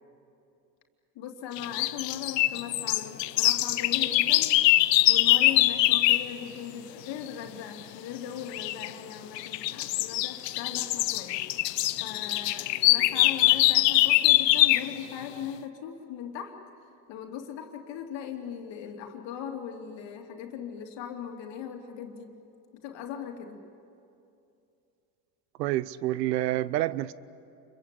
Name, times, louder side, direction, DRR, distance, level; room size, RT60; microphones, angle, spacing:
voice 1, 1.1-4.6 5.1-11.4 12.0-16.6 17.1-22.3 22.7-23.6, left 8 dB, 60° left, 3 dB, 3.0 m, -39 dB
sound 1, 1.6-6.3 8.5-8.9 9.4-14.9, left 16 dB, 90° left, 0.8 m, -23 dB
voice 2, 25.6-27.1, right 15 dB, 85° right, 19 dB, 0.8 m, -28 dB
28.5 x 23.0 x 8.5 m, 2.6 s
hypercardioid pair, 80°, 48 cm